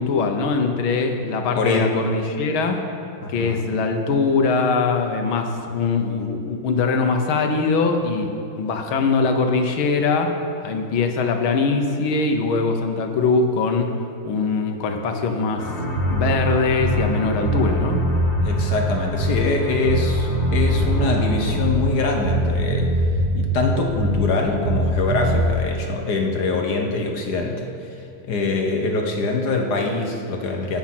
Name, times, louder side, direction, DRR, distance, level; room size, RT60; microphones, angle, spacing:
voice 1, 0.0-2.8 3.3-10.4 10.6-13.9 14.3-15.7 16.1-18.0, left 4 dB, 80° left, 4 dB, 1.8 m, -22 dB
voice 2, 1.5-2.0 3.2-3.6 18.4-22.9 23.3-30.8, left 3 dB, 55° left, 2 dB, 1.5 m, -24 dB
sound 1, 15.6-21.9, equal, 40° left, 1.8 m, -30 dB
Bass guitar, 15.9-17.2 17.4-19.6 19.8-22.0 22.2-24.4 24.6-25.5, right 1 dB, 50° right, 0.8 m, -22 dB
17.5 x 5.9 x 6.0 m, 2.5 s
omnidirectional pair, 2.3 m